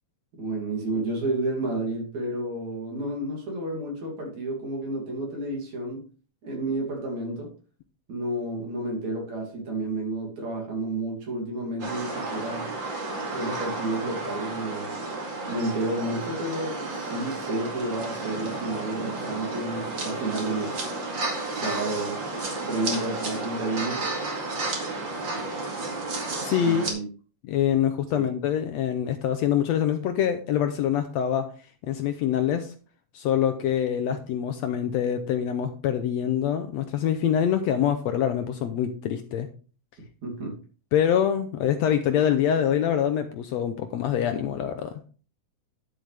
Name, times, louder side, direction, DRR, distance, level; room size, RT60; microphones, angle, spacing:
voice 1, 0.4-6.0 6.4-7.5 8.1-12.7 13.3-15.0 15.5-20.8 21.5-22.2 22.7-24.0 26.6-27.1 28.1-28.3 40.2-40.6 41.6-41.7, right 2 dB, 65° right, 0 dB, 4.1 m, -31 dB
sound 1, 11.8-26.9, right 2 dB, 40° right, 2.7 m, -32 dB
voice 2, 26.4-26.9 27.5-31.5 31.9-32.7 33.1-39.5 40.9-45.0, left 9 dB, 75° left, 8 dB, 1.7 m, -25 dB
11.0 x 7.6 x 3.4 m, 0.37 s
omnidirectional pair, 3.6 m